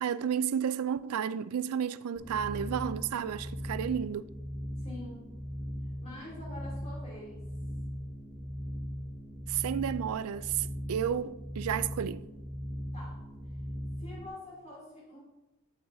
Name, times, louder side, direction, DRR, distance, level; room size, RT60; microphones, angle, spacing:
voice 1, 0.0-4.3 9.5-12.2, right 8 dB, 80° right, 0.4 m, -32 dB
sound 1, 2.2-14.3, equal, 10° right, 0.8 m, -39 dB
voice 2, 4.8-5.4 6.0-7.5 12.9-13.2 13.5-13.6 14.0-15.2, left 2 dB, 30° left, 2.8 m, -46 dB
8.6 x 8.6 x 2.7 m
head